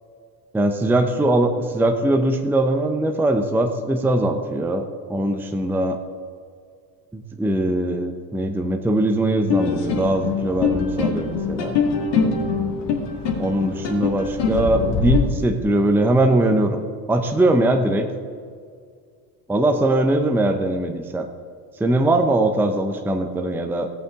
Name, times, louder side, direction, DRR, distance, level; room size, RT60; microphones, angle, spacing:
voice 1, 0.5-6.0 7.1-11.8 13.4-16.8 17.1-18.1 19.5-21.3 21.8-23.9, right 1 dB, 5° right, 5 dB, 0.7 m, -21 dB
sound 1, 9.5-15.2, left 5 dB, 55° left, 2.1 m, -23 dB
14.5 x 8.5 x 3.7 m, 2.1 s
supercardioid pair, 95°, 49 cm